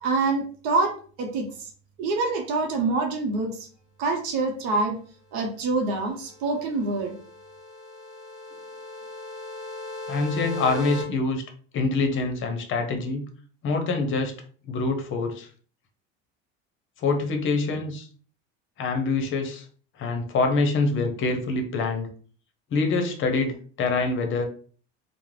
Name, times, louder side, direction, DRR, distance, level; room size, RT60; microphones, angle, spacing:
voice 1, 0.0-1.7 2.0-3.7 4.0-5.0 5.3-7.2, right 3 dB, 70° right, 4 dB, 0.7 m, -26 dB
sound 1, 6.1-11.0, left 2 dB, ahead, 1.3 m, -37 dB
voice 2, 10.1-11.4 11.7-13.3 13.6-14.3 14.7-15.5 17.0-18.1 18.8-19.6 20.0-22.1 22.7-24.5, left 3 dB, 40° left, 5 dB, 0.7 m, -25 dB
2.4 x 2.1 x 3.1 m, 0.43 s
supercardioid pair, 115°, 32 cm